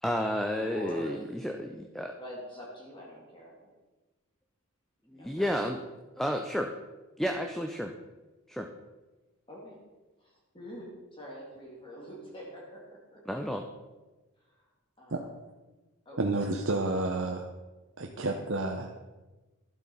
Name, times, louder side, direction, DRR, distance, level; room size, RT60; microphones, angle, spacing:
voice 1, 0.0-2.1 5.2-5.8 6.2-6.7 7.2-7.9 8.5-8.7 13.3-13.6, equal, ahead, 4 dB, 0.5 m, -31 dB
voice 2, 0.7-1.2 2.2-3.7 5.1-5.5 9.5-9.8 10.2-13.2 14.4-14.7 15.0-15.3 16.0-16.2, equal, 25° left, -3 dB, 2.7 m, -45 dB
voice 3, 16.2-17.5 18.0-18.9, right 2 dB, 60° right, 2 dB, 0.8 m, -30 dB
12.0 x 7.8 x 5.5 m, 1.2 s
head